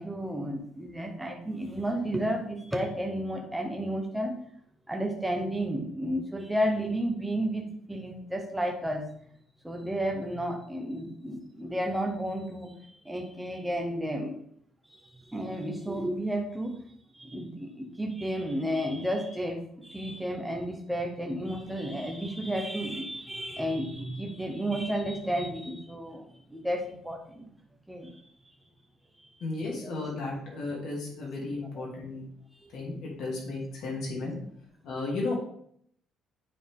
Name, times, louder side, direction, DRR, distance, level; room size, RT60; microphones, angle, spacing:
voice 1, 0.0-4.3 4.9-9.0 9.6-12.7 13.0-14.4 15.3-16.8 17.1-27.5 27.9-28.1 31.7-31.8 32.5-32.7, equal, 5° right, 2 dB, 1.0 m, -32 dB
voice 2, 29.4-32.2 32.7-34.3 34.8-35.3, left 3 dB, 60° left, -3 dB, 2.7 m, -34 dB
9.6 x 4.3 x 3.7 m, 0.67 s
cardioid pair, 170°, 0 cm